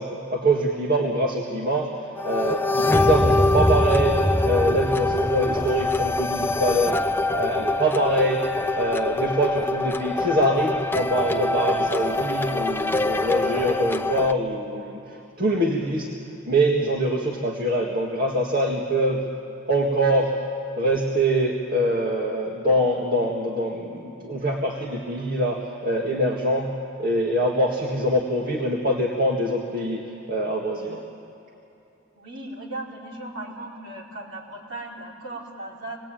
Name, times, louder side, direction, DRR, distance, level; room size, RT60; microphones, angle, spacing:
voice 1, 0.0-7.0 7.3-8.4 8.8-16.1 16.5-19.2 19.7-20.3 20.8-26.7 27.0-31.0, right 1 dB, 45° right, -1 dB, 1.9 m, -24 dB
sound 1, 2.2-14.3, left 2 dB, 10° left, 0.6 m, -24 dB
voice 2, 32.1-36.0, right 2 dB, 65° right, -3 dB, 4.7 m, -37 dB
26.5 x 20.5 x 9.1 m, 2.9 s
head